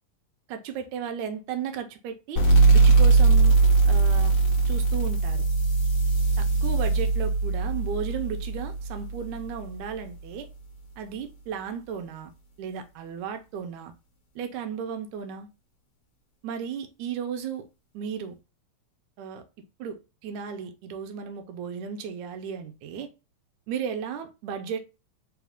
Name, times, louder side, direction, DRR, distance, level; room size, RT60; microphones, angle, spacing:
voice 1, 0.5-2.4 2.7-3.6 3.9-4.4 4.7-5.4 6.4-10.5 11.0-12.3 12.6-13.9 14.4-15.5 16.4-17.7 17.9-18.4 19.2-19.4 19.8-23.1 23.7-24.8, right 7 dB, 80° right, 2.0 m, -34 dB
sound 1, 2.4-9.6, right 3 dB, 50° left, 1.5 m, -20 dB
4.8 x 2.4 x 3.4 m
omnidirectional pair, 3.5 m